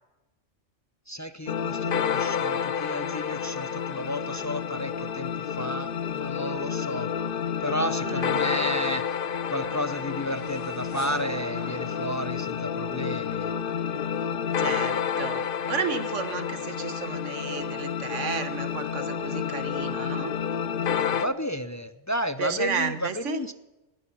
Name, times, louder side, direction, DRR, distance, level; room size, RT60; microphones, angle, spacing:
voice 1, 1.1-7.1 7.6-9.2 9.5-13.5 21.2-23.5, equal, 20° left, 12 dB, 0.5 m, -32 dB
sound 1, 1.5-21.3, left 7 dB, 50° left, 0.8 m, -30 dB
voice 2, 8.0-8.4 13.7-14.0 14.6-20.3 22.4-23.4, right 6 dB, 80° right, 11 dB, 1.6 m, -33 dB
sound 2, 9.3-13.4, right 1 dB, 50° right, 5.6 m, -44 dB
19.0 x 13.0 x 5.6 m, 1.0 s
omnidirectional pair, 1.2 m